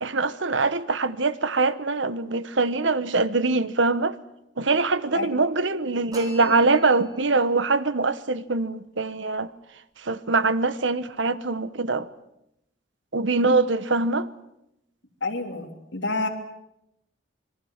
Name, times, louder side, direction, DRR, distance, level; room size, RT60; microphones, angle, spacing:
voice 1, 0.0-4.1 4.6-9.5 10.0-12.1 13.1-14.3, right 3 dB, 75° right, 1.1 m, -23 dB
sound 1, 6.1-7.4, right 1 dB, 20° right, 4.2 m, -42 dB
voice 2, 15.2-16.3, left 2 dB, 70° left, 3.3 m, -28 dB
26.0 x 22.0 x 7.3 m
head